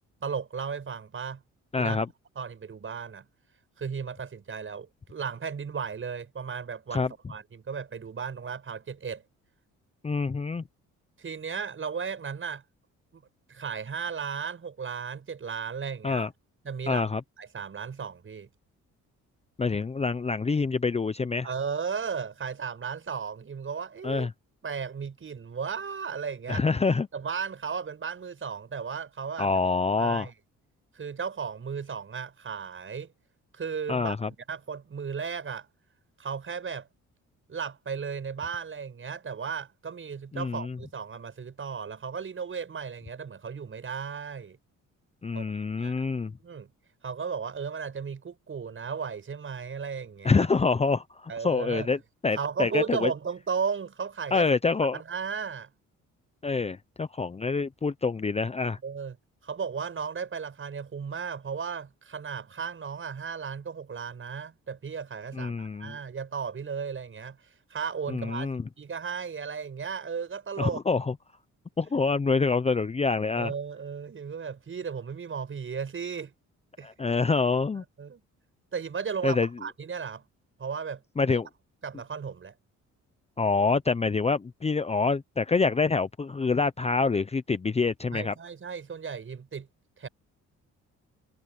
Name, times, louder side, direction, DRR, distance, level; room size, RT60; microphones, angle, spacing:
voice 1, 0.2-1.4 1.8-2.0 2.3-3.2 3.8-9.2 11.2-12.6 13.1-13.2 13.5-16.3 16.6-17.1 17.4-18.5 21.4-24.3 24.6-26.6 27.1-29.5 30.0-30.3 30.9-33.1 33.5-34.1 34.5-35.7 36.2-36.9 37.5-44.6 45.3-46.0 46.4-46.7 47.0-50.5 51.3-51.9 52.4-54.5 54.8-55.7 58.8-59.2 59.4-68.5 68.8-70.8 73.3-76.3 76.8-76.9 78.0-78.2 78.7-80.2 80.6-81.4 81.8-82.5 88.1-89.7 90.0-90.1, right 6 dB, 40° right, 6.8 m, -35 dB
voice 2, 1.7-2.1 6.9-7.1 10.0-10.6 16.0-16.3 16.9-17.2 19.6-21.5 24.0-24.3 26.5-27.1 29.4-30.3 33.9-34.3 40.3-40.8 45.2-46.3 50.2-52.0 52.2-53.1 54.3-55.0 56.4-58.8 65.3-66.0 68.1-68.6 70.6-71.1 71.8-73.5 76.8-77.8 79.2-79.5 81.2-81.5 83.4-88.3, left 4 dB, 20° left, 0.7 m, -26 dB
cardioid pair, 90°, 30 cm